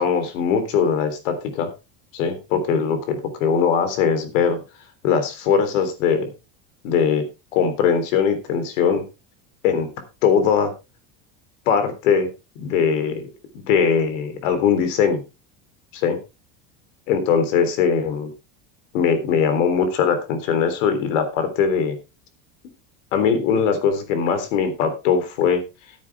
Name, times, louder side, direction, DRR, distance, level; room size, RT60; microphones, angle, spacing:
voice 1, 0.0-1.7 2.1-4.6 5.0-6.3 6.8-7.3 7.5-9.0 9.6-9.9 10.2-10.7 11.7-12.3 12.6-13.3 13.5-15.2 16.0-16.2 17.1-18.3 18.9-22.0 23.1-25.6, left 6 dB, 90° left, 9 dB, 3.6 m, -20 dB
13.0 x 9.8 x 3.5 m, 0.27 s
cardioid pair, 180°, 37 cm